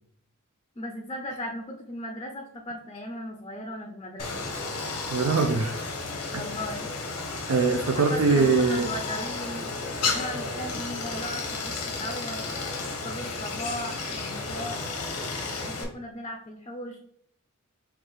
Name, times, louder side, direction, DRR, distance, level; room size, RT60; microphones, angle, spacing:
voice 1, 0.8-4.4 6.3-6.9 7.3-7.5 8.0-9.7 10.0-12.5 13.0-14.8 15.6-17.0, left 1 dB, 20° left, 2 dB, 0.5 m, -37 dB
Stream, 4.2-15.8, left 3 dB, 90° left, 0.9 m, -33 dB
voice 2, 5.1-5.8 7.5-8.9, right 4 dB, 65° right, 4 dB, 0.5 m, -22 dB
4.5 x 2.4 x 4.7 m, 0.67 s
head